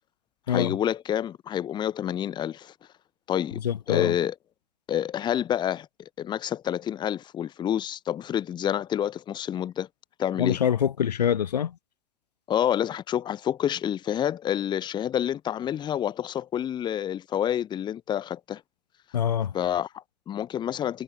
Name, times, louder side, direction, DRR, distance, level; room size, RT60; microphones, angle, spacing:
voice 1, 0.5-2.7 3.3-3.6 3.9-4.3 4.9-9.9 10.2-10.6 12.5-18.6 19.5-21.0, left 10 dB, 20° left, 1.0 m, -28 dB
voice 2, 3.6-4.1 10.4-11.7 19.1-19.5, left 9 dB, 85° left, 1.2 m, -25 dB
hypercardioid pair, 115°, 20 cm